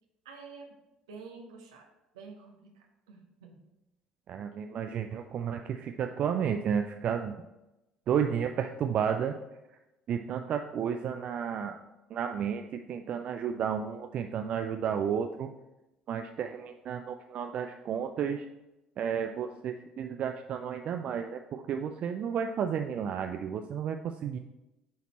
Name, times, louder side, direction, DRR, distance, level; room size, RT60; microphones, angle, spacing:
voice 1, 0.2-0.7 1.1-3.6, right 4 dB, 75° right, 3 dB, 1.1 m, -49 dB
voice 2, 4.3-7.3 8.1-9.4 10.1-11.8 12.1-15.5 16.1-18.5 19.0-24.4, right 8 dB, 50° right, 6 dB, 0.4 m, -32 dB
8.4 x 4.1 x 4.3 m, 0.98 s
figure-of-eight pair, 55°, 3 cm